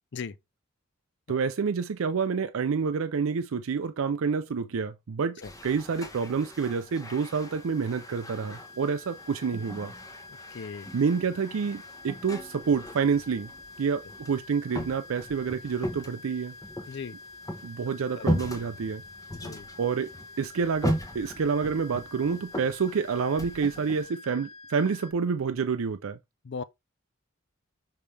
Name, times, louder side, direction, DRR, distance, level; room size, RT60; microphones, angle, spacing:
voice 1, 1.3-9.9 10.9-13.5 13.8-16.5 17.6-19.0 19.8-20.1 20.4-26.2, right 5 dB, 75° right, 0.5 m, -28 dB
sound 1, 5.4-24.1, equal, 15° left, 1.0 m, -38 dB
sound 2, 6.0-25.1, left 3 dB, 85° left, 0.9 m, -48 dB
voice 2, 10.5-10.9 16.9-17.2 18.2-18.3 19.3-19.7 26.4-26.6, left 5 dB, 55° left, 0.5 m, -37 dB
5.6 x 5.2 x 3.3 m
head